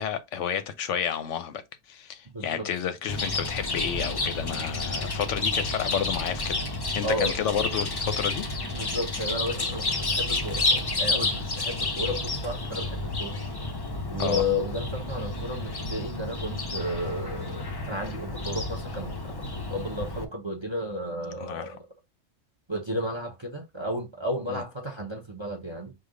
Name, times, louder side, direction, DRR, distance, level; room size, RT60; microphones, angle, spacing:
voice 1, 0.0-1.6 1.9-6.6 6.9-8.4 14.2-14.4 21.4-21.7 24.5-24.6, left 8 dB, 70° left, 0.9 m, -31 dB
voice 2, 2.3-2.7 7.0-7.3 8.7-13.4 14.1-19.2 19.7-21.9 22.7-25.9, left 1 dB, 25° right, 0.6 m, -33 dB
Chirp tweet, 3.1-20.2, left 2 dB, 40° left, 0.3 m, -30 dB
5.0 x 2.4 x 3.7 m
omnidirectional pair, 1.4 m